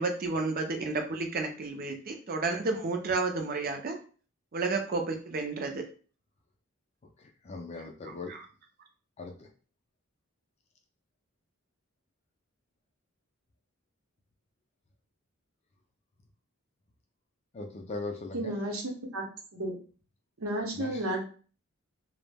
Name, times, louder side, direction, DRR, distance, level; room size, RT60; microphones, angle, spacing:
voice 1, 0.0-3.9 4.5-5.8 8.1-8.4, right 3 dB, 40° right, 4 dB, 0.4 m, -31 dB
voice 2, 7.2-8.3 9.2-9.5 17.5-18.6 20.7-21.0, left 3 dB, 30° left, 3 dB, 0.3 m, -39 dB
voice 3, 18.3-19.2 19.5-19.8 20.4-21.3, right 1 dB, 75° right, 0 dB, 0.7 m, -32 dB
2.1 x 2.0 x 3.2 m, 0.39 s
head